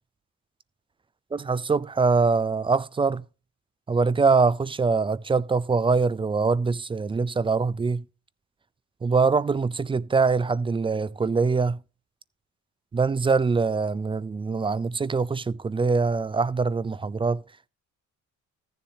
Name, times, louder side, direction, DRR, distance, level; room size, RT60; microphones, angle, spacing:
voice 1, 1.3-3.2 3.9-8.0 9.0-11.8 12.9-17.4, right 4 dB, 20° right, 0.3 m, -23 dB
14.5 x 7.1 x 2.7 m
cardioid pair, 90°, 30 cm